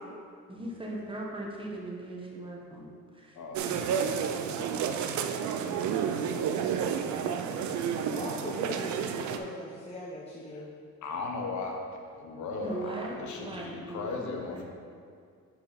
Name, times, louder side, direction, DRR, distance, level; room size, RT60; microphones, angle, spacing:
voice 1, 0.5-3.4 6.6-7.8 12.6-14.2 14.5-14.6, right 1 dB, 15° right, -2 dB, 1.2 m, -40 dB
voice 2, 3.4-4.5 11.0-12.8 13.2-14.6, left 3 dB, 70° left, 1 dB, 1.1 m, -37 dB
sound 1, 3.5-9.4, right 7 dB, 70° right, 0.5 m, -30 dB
voice 3, 8.1-10.7, left 1 dB, 20° left, -6 dB, 1.0 m, -40 dB
6.0 x 5.4 x 4.1 m, 2.2 s
cardioid pair, 90°, 30 cm